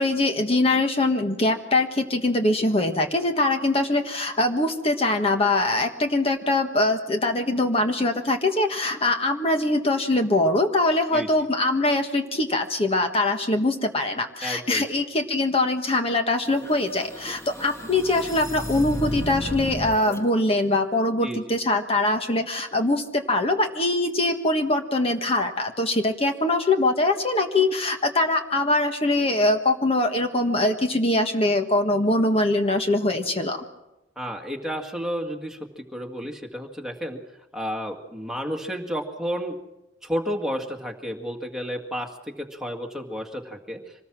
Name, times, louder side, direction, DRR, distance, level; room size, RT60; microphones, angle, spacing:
voice 1, 0.0-33.6, left 2 dB, 30° left, 5 dB, 1.5 m, -23 dB
voice 2, 14.4-14.8 21.2-21.6 34.2-37.2 37.5-39.6 40.0-43.9, equal, 5° right, 1 dB, 2.0 m, -31 dB
sound 1, 16.5-20.2, left 1 dB, 15° left, 1.4 m, -34 dB
25.5 x 19.5 x 6.1 m, 0.96 s
head